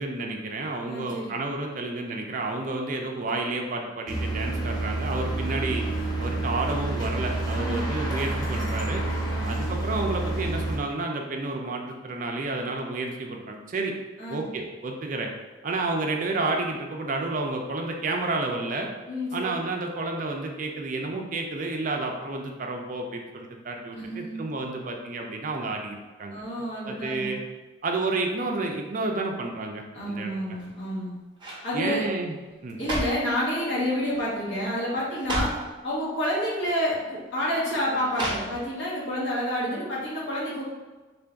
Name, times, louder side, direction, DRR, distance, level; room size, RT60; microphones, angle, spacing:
voice 1, 0.0-5.8 6.2-9.0 9.4-13.9 14.3-15.3 15.6-18.9 19.3-26.4 26.8-27.4 27.8-30.3 31.7-32.4 32.6-32.8, right 2 dB, 45° right, 2 dB, 0.4 m, -30 dB
voice 2, 0.9-1.3 7.5-7.8 9.3-9.6 14.2-14.4 19.1-19.6 23.9-24.5 26.3-27.4 29.9-31.1 31.6-32.1 32.8-35.5 35.8-40.6, equal, 75° left, -7 dB, 1.4 m, -29 dB
sound 1, 4.1-10.8, right 2 dB, 20° left, 0.6 m, -29 dB
sound 2, 30.5-30.9 31.4-31.7 32.5-33.3 34.1-34.4 34.7-34.8 35.1-35.7 36.6-36.8 38.1-38.9 39.3-39.4, right 1 dB, 25° right, 0.8 m, -32 dB
3.7 x 2.5 x 3.4 m, 1.3 s
head